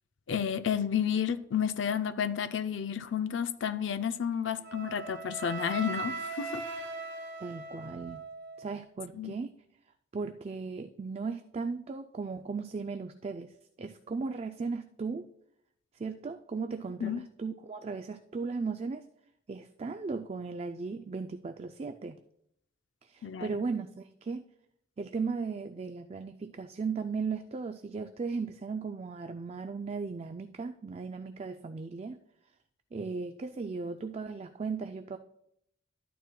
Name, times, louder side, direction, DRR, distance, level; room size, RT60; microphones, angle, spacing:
voice 1, 0.3-6.6 9.1-9.3 17.0-17.2 23.2-23.5, left 8 dB, 70° left, 0.4 m, -31 dB
Wind instrument woodwind instrument, 4.6-8.7, right 3 dB, 60° right, 2.0 m, -39 dB
voice 2, 7.4-8.2 8.6-9.6 10.1-15.3 15.9-19.1 19.5-22.2 23.0-24.4 25.0-32.2 32.9-35.2, right 4 dB, 30° right, 0.3 m, -36 dB
12.0 x 9.2 x 2.2 m
head